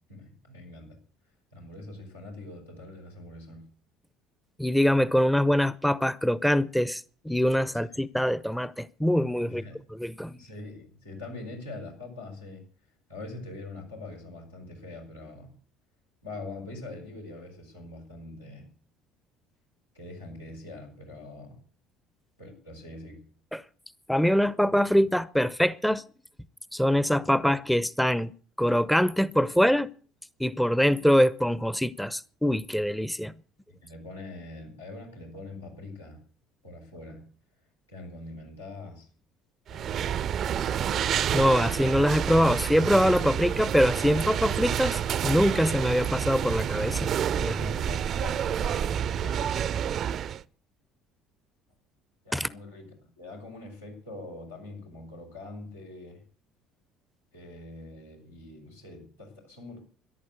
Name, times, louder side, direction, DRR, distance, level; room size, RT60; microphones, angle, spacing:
voice 1, 0.1-1.0 1.5-3.6 9.5-9.8 10.4-12.6 13.1-15.5 16.2-18.7 19.9-21.6 22.4-23.2 33.8-36.2 36.6-37.2 37.9-39.1 39.7-40.9 47.4-49.6 52.2-56.2 57.3-59.8, left 2 dB, 90° left, 6.0 m, -43 dB
voice 2, 4.6-9.6 9.9-10.4 23.5-23.6 24.1-26.0 26.7-28.3 28.6-29.9 30.4-33.3 41.3-47.1 47.4-47.5 52.3-52.5, equal, 5° left, 0.7 m, -24 dB
sound 1, 39.7-50.4, right 9 dB, 50° right, 0.6 m, -29 dB
14.0 x 11.0 x 8.1 m
figure-of-eight pair, 60°, 0 cm